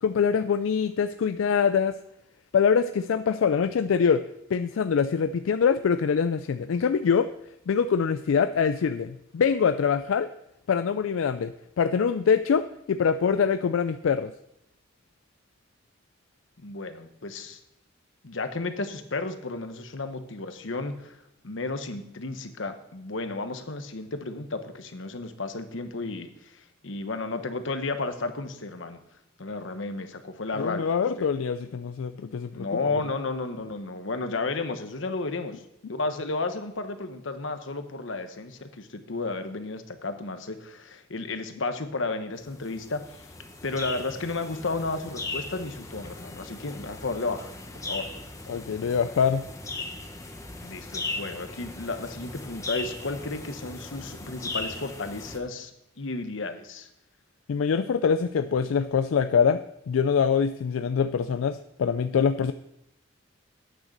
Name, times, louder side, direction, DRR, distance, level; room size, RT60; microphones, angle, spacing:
voice 1, 0.0-2.0 2.5-4.2 4.5-7.3 7.7-10.3 10.7-14.3 30.6-32.7 48.5-49.4 57.5-59.6 59.9-62.5, left 6 dB, 90° left, 11 dB, 0.4 m, -24 dB
voice 2, 16.6-17.6 18.2-21.2 21.4-26.6 26.8-29.0 29.4-31.3 32.5-35.6 35.9-43.3 43.6-47.5 47.7-48.1 50.6-55.7 56.0-56.9, left 3 dB, 70° left, 8 dB, 1.0 m, -33 dB
sound 1, 42.4-55.4, left 2 dB, 15° left, 1.0 m, -38 dB
9.1 x 6.4 x 6.6 m, 0.81 s
head